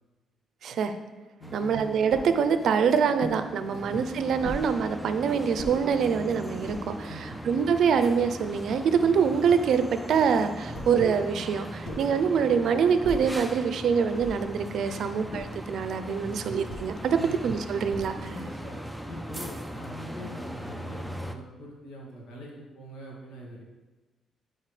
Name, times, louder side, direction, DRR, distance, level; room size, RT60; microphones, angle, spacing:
voice 1, 0.6-0.9 1.5-17.2 17.4-18.3, right 6 dB, 70° right, 10 dB, 0.6 m, -25 dB
voice 2, 1.4-1.8 3.6-3.9 7.1-7.4 9.0-9.1 10.6-10.9 11.9-12.0 14.9-15.1 16.2-16.4 17.2-17.4 18.3-18.8 19.1-23.7, equal, 85° left, -3 dB, 2.2 m, -44 dB
sound 1, 1.4-21.4, equal, ahead, 0.5 m, -40 dB
sound 2, 2.1-2.3 3.2-3.4 4.4-4.7 5.6-5.8 6.5-6.8 7.6-7.7 7.9-8.9 10.7-11.1 11.8-12.2 13.0-13.4 14.2-14.5 15.3-15.7 16.7-16.9 17.9-18.3, left 1 dB, 70° left, 1.7 m, -39 dB
11.5 x 4.5 x 3.3 m, 1.2 s
cardioid pair, 90°, 0 cm